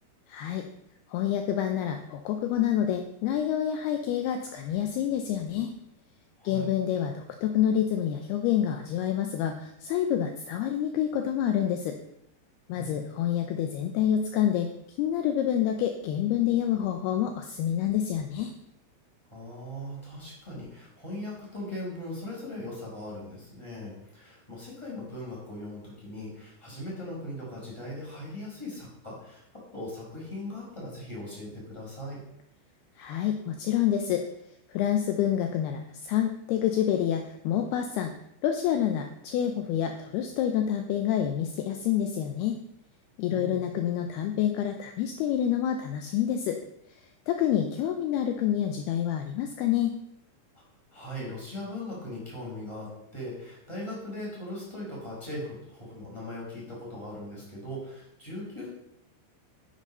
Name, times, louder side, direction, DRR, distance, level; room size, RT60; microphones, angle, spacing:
voice 1, 0.3-0.6 1.1-5.7 6.4-12.0 12.7-14.7 15.0-18.5 33.0-34.2 34.7-38.1 38.4-42.6 43.2-46.6 46.9-47.0 47.3-49.9, left 10 dB, 80° left, 5 dB, 2.3 m, -27 dB
voice 2, 6.4-6.7 12.7-13.0 19.3-32.2 43.3-43.6 50.9-58.7, left 1 dB, 5° left, -4 dB, 4.7 m, -39 dB
9.6 x 9.3 x 5.4 m, 0.78 s
omnidirectional pair, 5.5 m